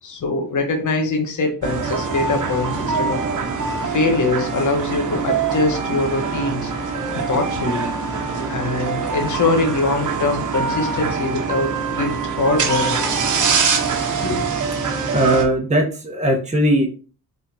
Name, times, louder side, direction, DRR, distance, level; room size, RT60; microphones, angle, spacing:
voice 1, 0.0-3.3 3.8-6.7 7.1-7.9 8.5-13.3 14.2-14.4, left 3 dB, 50° left, 3 dB, 1.2 m, -23 dB
sound 1, 1.6-15.4, right 5 dB, 50° right, 1.1 m, -24 dB
voice 2, 15.1-16.9, right 1 dB, 20° right, 0 dB, 1.1 m, -18 dB
4.0 x 3.7 x 2.8 m, 0.36 s
cardioid pair, 70°, 38 cm